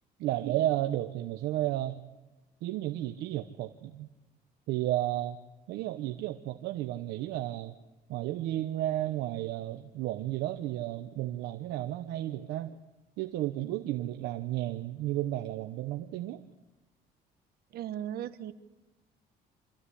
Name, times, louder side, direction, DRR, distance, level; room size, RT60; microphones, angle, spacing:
voice 1, 0.2-2.0 2.6-4.1 4.7-5.4 5.7-7.7 8.1-12.8 13.2-16.4, right 14 dB, 85° right, 8 dB, 1.0 m, -32 dB
voice 2, 17.7-18.5, right 10 dB, 70° right, 12 dB, 1.4 m, -36 dB
26.5 x 15.0 x 10.0 m, 1.1 s
cardioid pair, 110°, 17 cm